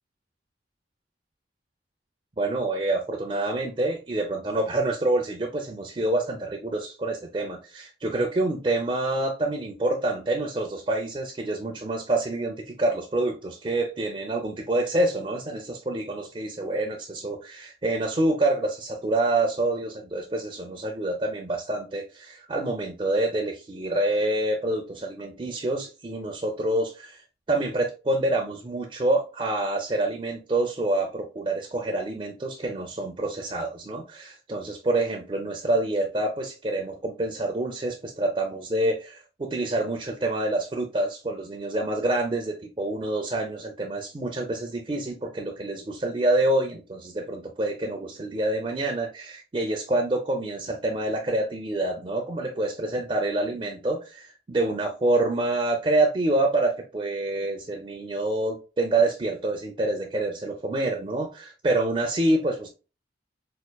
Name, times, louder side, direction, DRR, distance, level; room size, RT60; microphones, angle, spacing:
voice 1, 2.4-27.2 27.5-62.7, right 2 dB, 25° right, 2 dB, 0.4 m, -27 dB
4.4 x 2.4 x 2.2 m, 0.32 s
head